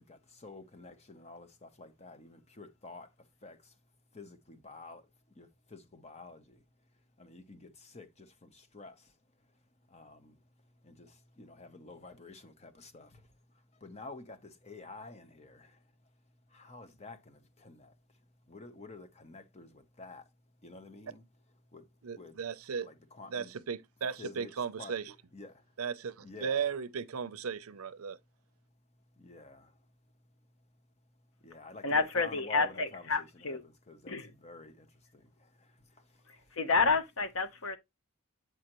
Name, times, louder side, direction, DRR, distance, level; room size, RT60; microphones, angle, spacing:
voice 1, 0.0-3.1 3.4-3.7 4.1-5.0 5.3-6.6 7.2-9.1 9.9-10.4 10.8-13.3 13.7-15.8 16.5-17.9 18.5-20.3 20.6-21.2 21.7-21.9 22.1-22.4 22.8-23.5 24.2-24.5 24.8-25.0 25.3-25.6 26.2-26.7 29.2-29.7 31.4-36.5, left 3 dB, 30° left, 0.8 m, -50 dB
voice 2, 22.0-22.9 23.3-25.1 25.8-28.2, right 6 dB, 75° right, 0.6 m, -36 dB
voice 3, 31.8-33.6 34.1-34.3 36.6-37.8, left 4 dB, 65° left, 0.9 m, -29 dB
7.7 x 4.9 x 3.0 m
head